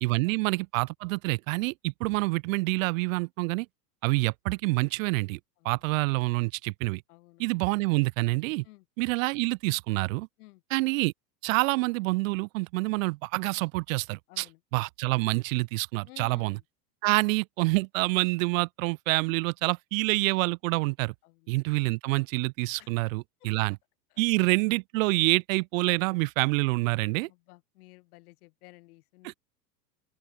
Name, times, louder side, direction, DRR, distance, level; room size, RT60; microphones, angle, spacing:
voice 1, 0.0-3.7 4.0-5.4 5.6-7.0 7.4-8.6 9.0-10.3 10.7-11.1 11.4-14.5 14.7-16.6 17.0-21.1 21.5-23.8 24.2-27.3 29.2-29.3, right 24 dB, 55° right, 0.9 m, -27 dB
voice 2, 7.1-7.4 8.6-8.9 10.4-10.6 14.3-14.6 16.0-16.6 21.2-21.5 22.8-22.9 23.4-23.5 24.1-24.2 27.3-29.4, left 21 dB, 60° left, 3.1 m, -54 dB
open air
hypercardioid pair, 110°, 50 cm